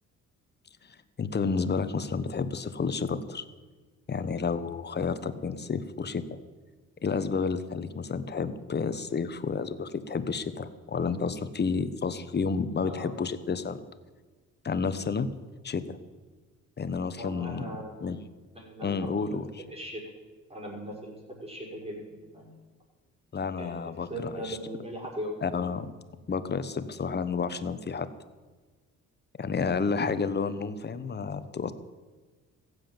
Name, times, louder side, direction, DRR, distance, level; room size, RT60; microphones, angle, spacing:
voice 1, 0.8-3.4 4.1-6.4 7.0-13.8 14.6-15.3 15.6-16.0 16.8-17.6 18.0-18.2 18.8-19.6 23.3-24.6 25.4-25.9 26.3-28.1 29.4-31.7, left 5 dB, 35° left, 12 dB, 1.1 m, -30 dB
voice 2, 17.2-18.1 18.5-19.4 19.7-20.0 20.5-22.5 23.6-25.4, right 1 dB, 20° right, -2 dB, 5.9 m, -39 dB
15.0 x 8.0 x 9.0 m, 1.4 s
cardioid pair, 90°, 30 cm